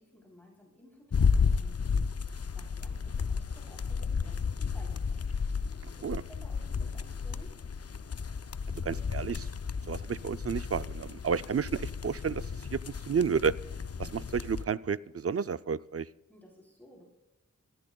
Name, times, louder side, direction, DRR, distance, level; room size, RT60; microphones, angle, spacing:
voice 1, 0.0-5.2 5.9-7.6 16.3-17.0, equal, 5° left, -2 dB, 3.2 m, -56 dB
sound 1, 1.1-14.6, left 5 dB, 50° left, 0.5 m, -33 dB
voice 2, 8.8-9.5 9.9-13.5 14.0-16.1, right 6 dB, 45° right, 16 dB, 0.4 m, -31 dB
28.5 x 14.5 x 2.3 m, 0.94 s
wide cardioid pair, 50°, 33 cm